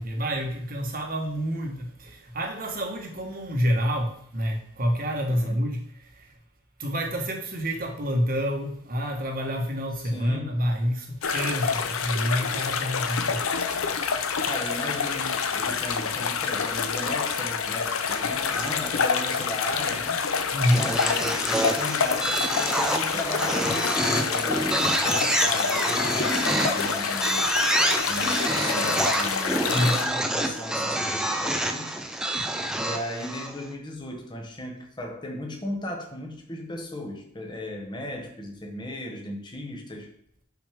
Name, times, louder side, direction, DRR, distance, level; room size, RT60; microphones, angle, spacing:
voice 1, 0.0-6.3 6.8-13.6 14.1-14.2 20.5-20.8 29.7-30.0, equal, 40° right, 1.3 m, -28 dB
voice 2, 5.3-5.6 10.0-10.6 14.4-20.2 20.7-27.5 28.1-32.0 32.8-40.1, left 1 dB, 20° left, 1.1 m, -36 dB
sound 1, 11.2-30.1, left 6 dB, 75° left, 0.7 m, -27 dB
sound 2, 18.4-19.1 20.7-33.7, right 1 dB, 5° right, 0.4 m, -27 dB
6.1 x 5.9 x 3.5 m
head